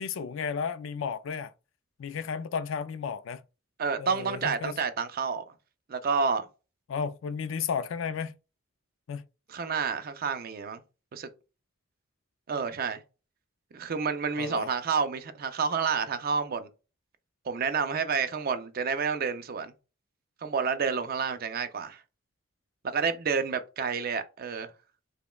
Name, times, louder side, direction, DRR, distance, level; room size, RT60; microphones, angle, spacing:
voice 1, 0.0-1.5 2.0-3.4 4.0-4.8 6.9-8.3 9.1-9.2 14.4-14.7, left 6 dB, 75° left, 0.4 m, -33 dB
voice 2, 3.8-5.5 5.9-6.5 9.5-10.8 11.1-11.3 12.5-13.0 13.7-16.7 17.5-19.7 20.4-22.0 22.8-24.7, right 5 dB, 50° right, 0.5 m, -29 dB
5.0 x 2.2 x 2.3 m
head